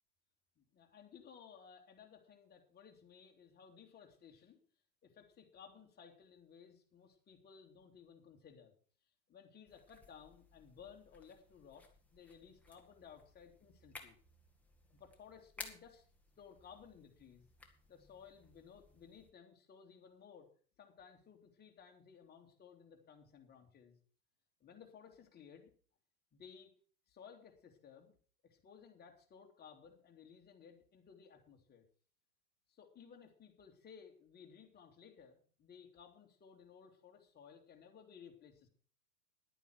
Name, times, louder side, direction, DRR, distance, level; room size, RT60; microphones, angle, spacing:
voice 1, 0.6-4.6 5.0-8.7 9.3-11.9 12.1-14.2 14.9-16.0 16.4-17.5 17.9-20.5 20.8-24.0 24.6-25.7 26.3-26.7 27.1-28.1 28.4-31.9 32.7-38.7, left 7 dB, 20° left, 2 dB, 2.5 m, -58 dB
sound 1, 9.7-19.3, left 3 dB, 5° left, 1.6 m, -57 dB
11.0 x 9.0 x 6.1 m, 0.43 s
hypercardioid pair, 110°, 50 cm